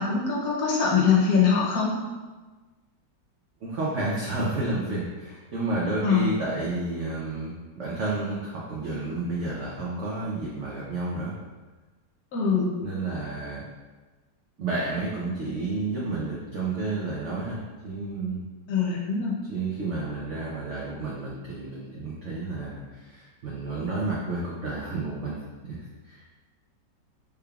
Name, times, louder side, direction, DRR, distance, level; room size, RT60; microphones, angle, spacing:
voice 1, 0.0-1.9 6.0-6.3 12.3-12.7 18.7-19.4, left 6 dB, 65° left, -4 dB, 1.0 m, -23 dB
voice 2, 3.6-11.3 12.8-13.6 14.6-17.6 17.8-18.4 19.5-25.4 25.6-25.8 26.1-26.3, right 2 dB, 85° right, -5 dB, 0.6 m, -31 dB
3.5 x 3.4 x 2.3 m, 1.3 s
omnidirectional pair, 1.9 m